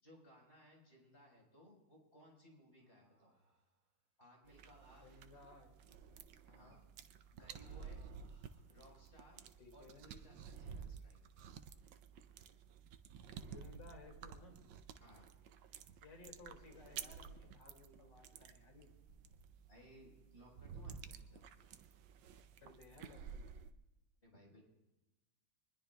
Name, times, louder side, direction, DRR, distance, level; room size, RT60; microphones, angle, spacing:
voice 1, 0.0-3.3 4.2-5.1 6.5-6.9 7.3-8.0 8.7-9.4 9.7-11.2 15.0-15.3 19.7-21.4 24.2-24.6, equal, 30° left, -2 dB, 4.8 m, -62 dB
sound 1, 2.8-3.9 4.6-5.9 7.4-10.9 11.5-11.8 12.2-12.6 14.4-14.5, right 3 dB, 45° right, 2.3 m, -74 dB
sound 2, 4.5-23.7, right 7 dB, 85° right, 1.4 m, -53 dB
voice 2, 5.0-5.8 6.5-6.8 9.6-10.0 13.4-14.6 16.0-18.9 22.6-23.5, left 3 dB, 70° left, 1 dB, 3.0 m, -59 dB
25.0 x 20.5 x 2.3 m, 1.0 s
omnidirectional pair, 2.0 m